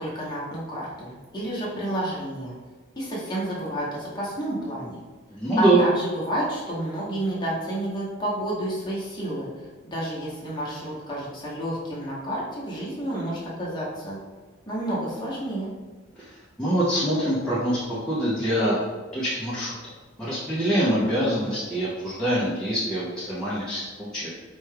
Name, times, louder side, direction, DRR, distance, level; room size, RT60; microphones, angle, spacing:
voice 1, 0.0-2.5 3.0-5.0 5.6-14.2 14.6-15.7, right 1 dB, 20° left, -6 dB, 0.9 m, -30 dB
voice 2, 5.3-5.8 16.2-16.3 16.6-18.8 19.1-19.7 20.2-24.3, right 1 dB, 5° left, -10 dB, 0.5 m, -24 dB
4.4 x 2.2 x 3.2 m, 1.4 s
head